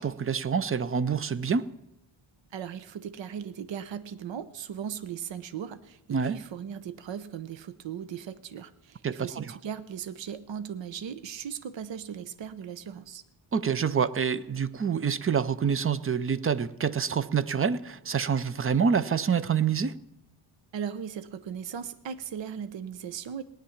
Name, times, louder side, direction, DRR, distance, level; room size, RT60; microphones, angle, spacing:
voice 1, 0.0-1.7 6.1-6.4 9.0-9.6 13.5-20.0, right 6 dB, 30° right, 16 dB, 0.5 m, -27 dB
voice 2, 2.5-13.2 20.7-23.4, right 8 dB, 65° right, 14 dB, 0.9 m, -38 dB
18.0 x 10.5 x 7.1 m, 0.84 s
wide cardioid pair, 145°, 48 cm